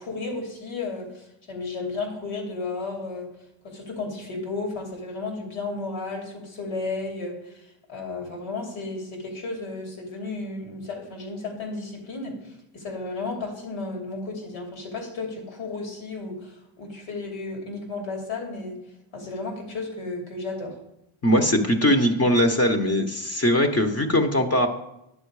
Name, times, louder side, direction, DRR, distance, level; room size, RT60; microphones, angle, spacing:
voice 1, 0.0-3.3 3.6-12.4 12.7-18.8 19.1-20.8, left 3 dB, 90° left, 1 dB, 2.9 m, -33 dB
voice 2, 21.2-24.7, equal, 30° left, 5 dB, 1.1 m, -21 dB
10.0 x 7.5 x 4.8 m, 0.84 s
cardioid pair, 100°, 47 cm